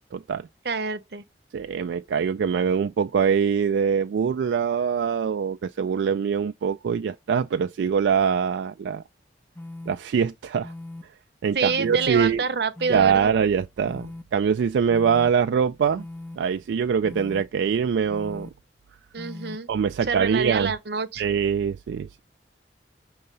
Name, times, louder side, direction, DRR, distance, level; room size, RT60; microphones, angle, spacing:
voice 1, 0.1-0.5 1.5-9.0 9.9-10.7 11.4-12.4 12.9-16.0 16.4-18.5 19.7-20.7 21.2-22.2, right 6 dB, 85° right, 0.3 m, -23 dB
voice 2, 0.6-1.2 11.5-13.3 19.1-19.7 20.0-21.2, right 5 dB, 60° right, 0.8 m, -27 dB
sound 1, 9.6-10.0 10.6-11.0 11.7-12.1 12.8-13.2 13.8-14.2 14.9-15.3 16.0-16.4 17.0-17.4 18.1-18.5 19.2-19.6, left 1 dB, 10° left, 0.5 m, -39 dB
6.5 x 2.8 x 5.3 m
head